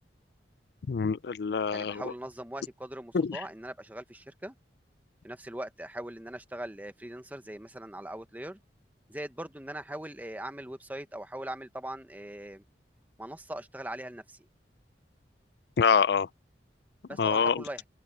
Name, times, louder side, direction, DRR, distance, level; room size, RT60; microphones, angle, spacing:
voice 1, 0.9-2.0 3.1-3.4 15.8-16.3 17.2-17.6, left 6 dB, 65° left, 0.4 m, -25 dB
voice 2, 1.7-4.5 5.2-8.6 9.1-12.6 13.2-14.4 17.1-17.8, right 1 dB, 10° right, 1.0 m, -40 dB
open air
head